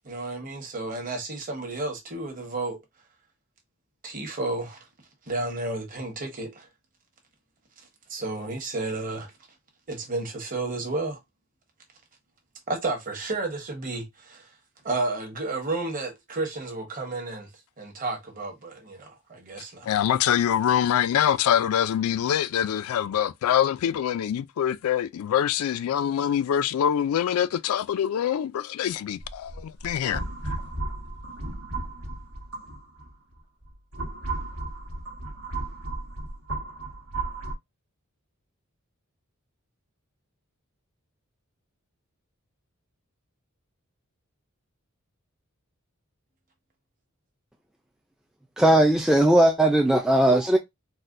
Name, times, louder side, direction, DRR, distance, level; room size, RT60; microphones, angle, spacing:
voice 1, 0.0-2.8 4.0-4.9 5.3-6.7 8.1-9.3 9.9-11.2 12.7-14.5 14.8-17.5 17.8-19.9, right 2 dB, 40° right, 1.1 m, -32 dB
voice 2, 19.9-30.5, left 9 dB, 85° left, 0.3 m, -24 dB
sound 1, 29.2-33.1 33.6-37.5, right 2 dB, 90° right, 1.3 m, -34 dB
voice 3, 48.6-50.6, right 1 dB, 5° right, 0.3 m, -18 dB
4.1 x 2.1 x 2.5 m
head